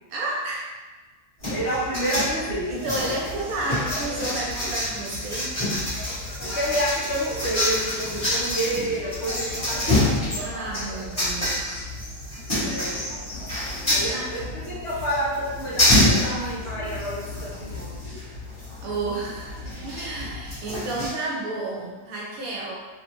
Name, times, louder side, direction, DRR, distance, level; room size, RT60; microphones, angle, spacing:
voice 1, 0.1-0.7 2.7-5.6 10.4-11.7 14.1-14.3 18.8-22.7, right 2 dB, 75° right, -4 dB, 1.1 m, -31 dB
sound 1, 1.4-21.1, left 1 dB, 25° left, 1.2 m, -27 dB
voice 2, 1.5-2.7 6.4-10.1 12.6-13.0 13.9-17.9, right 1 dB, 55° left, -8 dB, 1.0 m, -29 dB
3.0 x 2.3 x 2.9 m, 1.3 s
omnidirectional pair, 1.5 m